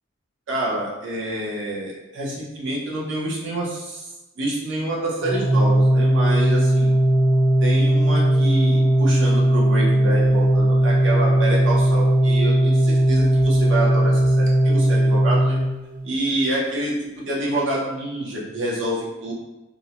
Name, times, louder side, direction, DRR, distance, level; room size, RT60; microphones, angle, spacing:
voice 1, 0.5-6.9 7.6-15.6 16.0-19.3, right 1 dB, 70° right, -5 dB, 0.7 m, -27 dB
Organ, 5.2-16.1, right 1 dB, 5° left, 0.4 m, -18 dB
2.5 x 2.0 x 2.8 m, 1.0 s
head